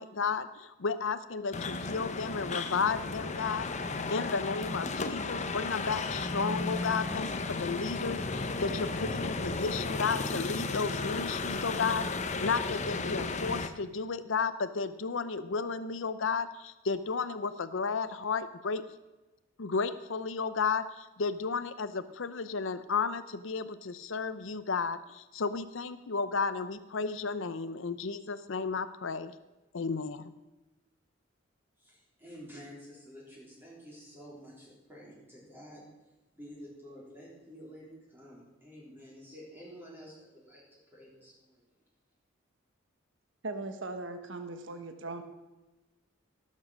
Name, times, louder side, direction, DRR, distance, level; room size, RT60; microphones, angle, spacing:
voice 1, 0.0-3.7 4.1-12.1 12.4-18.8 19.6-29.3 29.7-30.3, left 5 dB, 65° left, 12 dB, 0.6 m, -33 dB
sound 1, 1.5-13.7, left 3 dB, 35° left, 0.9 m, -34 dB
voice 2, 31.8-35.9 36.3-41.8, equal, 10° right, -6 dB, 3.7 m, -50 dB
voice 3, 43.4-45.2, right 2 dB, 65° right, 7 dB, 1.2 m, -39 dB
18.0 x 7.5 x 6.4 m, 1.1 s
head